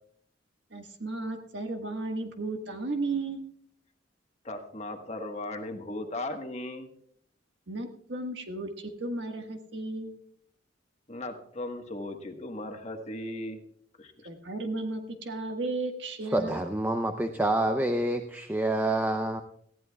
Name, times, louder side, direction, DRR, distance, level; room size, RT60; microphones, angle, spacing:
voice 1, 0.7-3.4 7.7-10.2 14.2-16.6, right 2 dB, 70° right, 5 dB, 1.5 m, -34 dB
voice 2, 4.4-6.9 11.1-13.6 14.0-14.3, left 1 dB, 35° left, 4 dB, 1.3 m, -37 dB
voice 3, 16.3-19.4, right 1 dB, 10° right, 5 dB, 0.5 m, -27 dB
19.0 x 15.0 x 2.3 m, 0.65 s
head